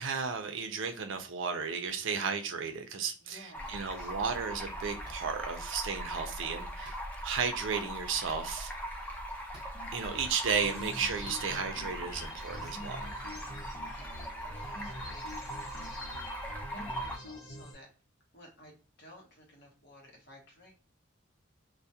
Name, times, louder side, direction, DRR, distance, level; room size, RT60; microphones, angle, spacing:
voice 1, 0.0-6.9 7.2-8.7 9.9-13.1, right 6 dB, 60° right, 0.4 m, -34 dB
sound 1, 2.1-2.3 3.6-3.7 5.0-5.2 6.8-7.0 8.2-8.5 9.5-9.7 11.2-11.4, equal, 20° right, 0.8 m, -54 dB
voice 2, 3.2-4.1 13.0-13.5 13.8-17.9 18.3-20.8, equal, 50° left, 0.8 m, -56 dB
Stream, 3.5-17.2, right 1 dB, 5° left, 0.3 m, -40 dB
sound 2, 9.7-17.7, left 1 dB, 85° left, 0.8 m, -45 dB
2.2 x 2.1 x 2.7 m
head